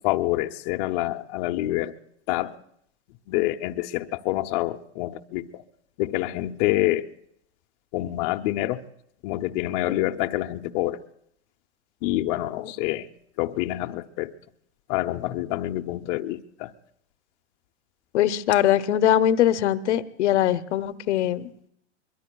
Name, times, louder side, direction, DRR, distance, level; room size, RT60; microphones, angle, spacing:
voice 1, 0.0-1.9 2.3-2.5 3.3-5.6 6.0-7.1 7.9-8.8 9.2-11.0 12.0-13.1 13.4-14.3 14.9-16.7, left 16 dB, 40° left, 5 dB, 0.6 m, -27 dB
voice 2, 18.1-21.5, left 11 dB, 70° left, 12 dB, 0.8 m, -22 dB
24.0 x 22.0 x 2.3 m, 0.72 s
hypercardioid pair, 135°, 36 cm